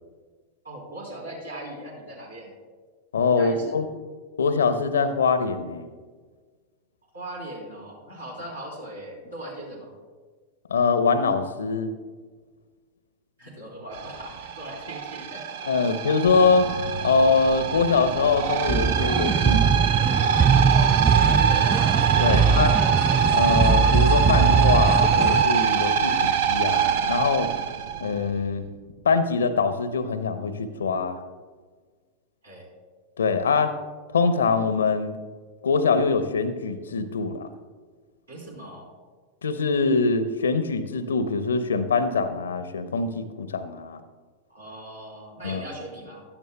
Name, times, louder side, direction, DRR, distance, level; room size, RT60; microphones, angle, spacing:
voice 1, 0.6-2.5 3.4-3.8 7.1-9.9 13.4-15.9 21.5-21.8 22.2-22.7 32.4-32.7 38.3-38.9 44.5-46.3, right 1 dB, 80° right, -3 dB, 3.8 m, -39 dB
voice 2, 3.1-3.8 4.4-5.9 10.7-11.9 15.7-16.7 17.0-19.9 22.2-22.7 23.3-27.5 28.0-28.7 29.0-31.2 33.2-33.7 34.1-35.1 35.6-37.5 39.4-44.0 45.4-45.6, left 4 dB, 70° left, 11 dB, 0.7 m, -23 dB
sound 1, 13.9-28.5, right 7 dB, 50° right, 0.7 m, -24 dB
sound 2, 18.7-25.4, right 6 dB, 15° right, 0.3 m, -21 dB
15.5 x 12.0 x 2.3 m, 1.5 s
figure-of-eight pair, 90°, 0 cm